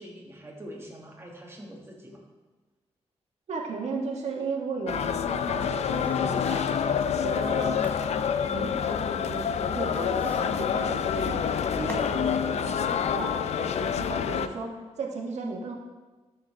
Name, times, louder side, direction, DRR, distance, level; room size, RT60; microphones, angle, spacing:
voice 1, 0.0-2.2, equal, 20° right, -1 dB, 1.9 m, -44 dB
voice 2, 3.5-7.8 8.5-11.4 11.7-15.8, right 3 dB, 80° right, 0 dB, 1.6 m, -35 dB
sound 1, 4.9-14.5, left 7 dB, 75° left, 0.5 m, -27 dB
sound 2, 5.1-12.2 12.5-12.6, left 1 dB, 15° left, 1.0 m, -48 dB
13.0 x 6.8 x 3.4 m, 1.3 s
wide cardioid pair, 110°, 11 cm